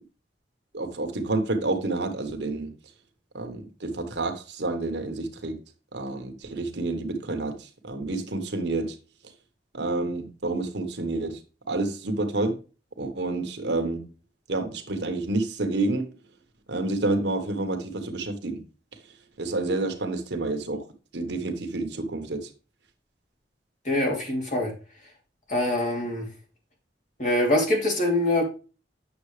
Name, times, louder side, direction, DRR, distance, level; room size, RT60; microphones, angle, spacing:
voice 1, 0.7-2.7 3.3-5.5 5.9-9.0 9.7-11.4 11.7-12.6 13.0-14.1 14.5-16.1 16.7-18.6 19.4-20.8 21.1-22.5, right 2 dB, 75° right, 1.3 m, -29 dB
voice 2, 23.8-24.7 25.5-26.3 27.2-28.4, left 1 dB, 45° left, 2.9 m, -24 dB
8.6 x 6.7 x 3.3 m
head